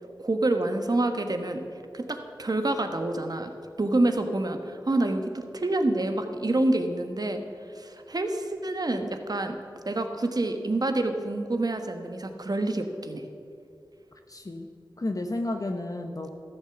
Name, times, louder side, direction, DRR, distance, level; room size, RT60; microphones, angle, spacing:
voice 1, 0.2-1.6 1.9-3.5 3.8-7.4 7.7-9.6 9.8-13.2, right 2 dB, 50° right, 6 dB, 1.3 m, -27 dB
voice 2, 14.3-14.7 15.0-16.3, left 2 dB, 45° left, 4 dB, 0.9 m, -31 dB
13.5 x 7.9 x 7.1 m, 2.5 s
cardioid pair, 40°, 8 cm